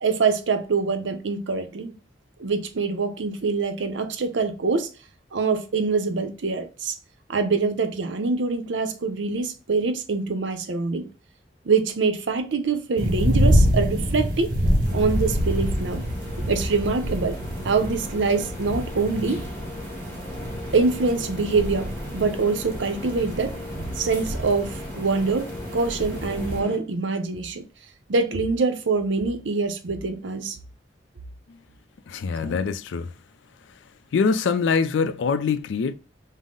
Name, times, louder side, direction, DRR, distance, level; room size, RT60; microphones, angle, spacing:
voice 1, 0.0-1.9 2.4-4.9 5.3-6.9 7.3-11.1 11.6-14.5 14.9-16.0 16.4-17.4 17.6-19.4 20.7-21.9 22.1-23.5 24.0-27.6 28.1-30.6, right 4 dB, 75° right, 0.6 m, -24 dB
sound 1, 13.0-26.6, equal, 50° right, 1.4 m, -27 dB
sound 2, 14.8-26.8, left 1 dB, 10° left, 1.0 m, -38 dB
voice 2, 32.1-33.1 34.1-35.9, left 5 dB, 75° left, 0.4 m, -24 dB
5.4 x 2.0 x 3.7 m
head